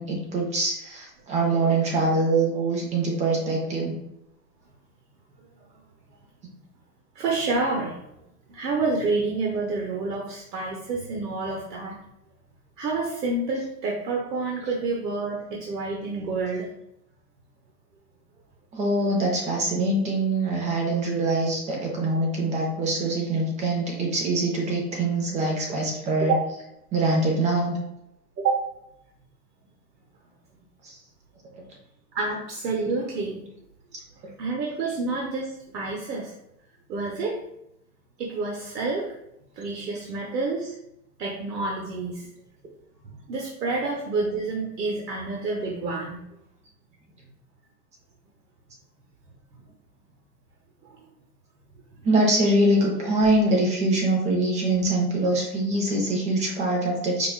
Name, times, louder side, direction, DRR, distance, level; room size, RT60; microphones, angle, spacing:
voice 1, 0.0-3.9 18.7-26.3 26.9-27.8 30.8-31.0 52.0-57.3, right 2 dB, 15° right, 0 dB, 0.5 m, -24 dB
voice 2, 7.2-8.0 8.5-12.0 12.8-16.7 26.2-26.4 28.4-28.7 32.1-33.4 34.4-36.3 36.9-37.4 38.2-39.2 39.6-40.7 41.2-42.3 43.0-46.2 50.8-51.0, right 3 dB, 85° right, 0 dB, 0.8 m, -28 dB
4.7 x 2.3 x 2.3 m, 0.81 s
hypercardioid pair, 120°, 48 cm